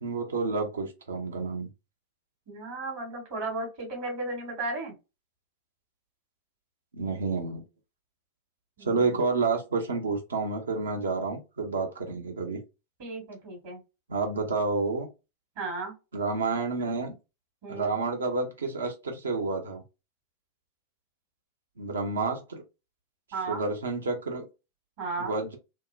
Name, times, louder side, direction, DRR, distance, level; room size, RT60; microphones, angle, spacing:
voice 1, 0.0-1.7 6.9-7.6 8.8-12.6 14.1-15.1 16.1-17.1 17.7-19.8 21.8-22.6 23.5-24.4 25.2-25.6, right 4 dB, 70° right, 0.7 m, -29 dB
voice 2, 2.5-4.9 8.8-9.2 13.0-13.8 15.6-15.9 17.6-18.0 23.3-23.6 25.0-25.4, right 3 dB, 50° right, 1.2 m, -35 dB
2.8 x 2.0 x 2.3 m
figure-of-eight pair, 90°, 0 cm